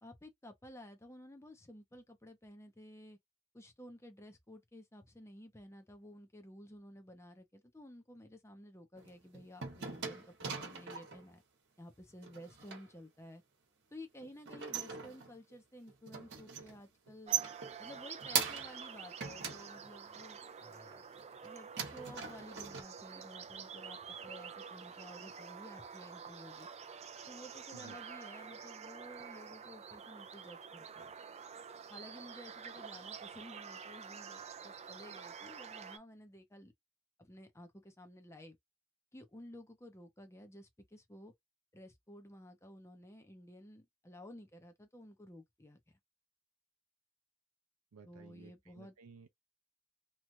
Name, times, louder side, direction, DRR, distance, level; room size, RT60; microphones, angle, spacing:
voice 1, 0.0-3.2 3.5-11.4 11.8-13.4 13.9-17.3 17.8-21.0 21.4-26.7 27.3-31.1 31.9-36.7 37.2-38.6 39.1-41.3 41.7-46.0 48.1-49.0, left 1 dB, 10° left, 0.7 m, -53 dB
sound 1, 9.0-11.2 12.2-12.8 14.2-15.5 15.9-16.8 17.1-18.9 19.2-20.3 20.9-21.5 21.8-22.8, right 7 dB, 55° right, 1.2 m, -40 dB
sound 2, 17.3-36.0, right 6 dB, 30° right, 0.4 m, -48 dB
voice 2, 47.9-49.3, right 5 dB, 85° right, 0.5 m, -56 dB
3.0 x 2.4 x 2.7 m
head